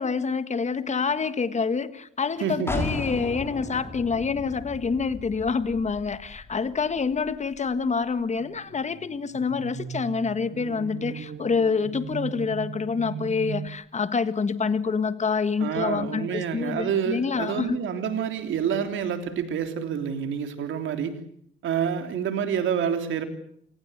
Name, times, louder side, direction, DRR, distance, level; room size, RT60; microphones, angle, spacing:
voice 1, 0.0-17.8, left 5 dB, 35° left, 13 dB, 1.6 m, -27 dB
voice 2, 2.4-2.9 15.6-21.2 21.6-23.2, right 8 dB, 75° right, 8 dB, 3.4 m, -28 dB
sound 1, 2.7-8.2, left 2 dB, 10° left, 4.6 m, -36 dB
sound 2, 8.4-13.7, right 7 dB, 55° right, 1.9 m, -38 dB
28.5 x 19.0 x 8.1 m, 0.66 s
cardioid pair, 90°, 20 cm